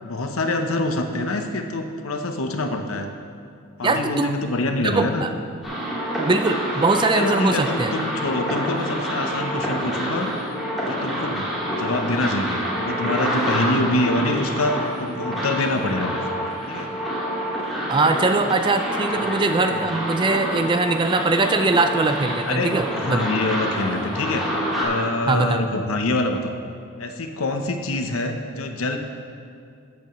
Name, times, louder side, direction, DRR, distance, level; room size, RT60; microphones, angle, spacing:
voice 1, 0.0-3.1 3.8-5.2 7.1-10.3 10.8-16.2 16.7-16.9 19.1-19.3 19.7-19.9 22.5-24.5 24.8-26.5 27.0-29.0, left 2 dB, 70° left, 5 dB, 0.8 m, -25 dB
voice 2, 3.8-4.3 4.8-5.3 6.2-7.9 17.9-23.2 25.3-25.6, right 3 dB, 20° right, 7 dB, 0.3 m, -21 dB
sound 1, 5.6-24.8, equal, ahead, 2.1 m, -27 dB
13.5 x 8.1 x 3.1 m, 2.4 s
head